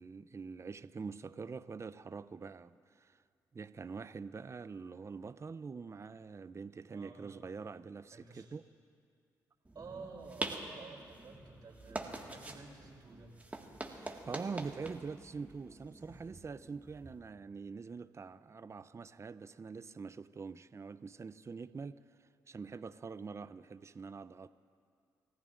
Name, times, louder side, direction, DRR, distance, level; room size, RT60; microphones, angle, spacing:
voice 1, 0.0-3.2 3.5-8.6 13.9-24.5, right 5 dB, 35° right, 0.5 m, -45 dB
voice 2, 6.9-7.2 8.1-8.5 9.7-13.3, right 4 dB, 50° right, 3.3 m, -51 dB
sound 1, 9.6-17.2, right 2 dB, 15° right, 1.8 m, -45 dB
29.5 x 14.5 x 2.6 m
hypercardioid pair, 50°, 8 cm